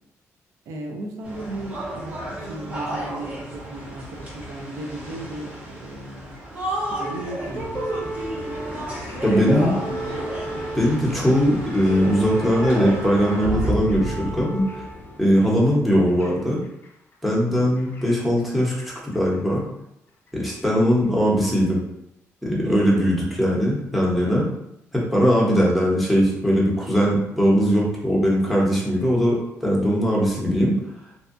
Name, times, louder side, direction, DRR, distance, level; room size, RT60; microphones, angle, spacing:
voice 1, 0.7-6.4 6.9-7.9 9.3-10.2 10.5-10.6 17.5-17.8 22.7-23.1, right 2 dB, 85° right, 2 dB, 0.4 m, -35 dB
sound 1, 1.2-13.7, right 1 dB, 30° right, 1.0 m, -33 dB
sound 2, 7.4-16.9 17.8-18.9 19.1-19.4 20.3-20.4, equal, 40° left, 0.4 m, -32 dB
voice 2, 9.2-9.7 10.7-14.6 15.2-16.6 17.2-19.6 20.3-21.8 22.4-24.5 24.9-30.8, equal, ahead, -5 dB, 0.8 m, -20 dB
2.6 x 2.2 x 2.5 m, 0.83 s
cardioid pair, 105°, 5 cm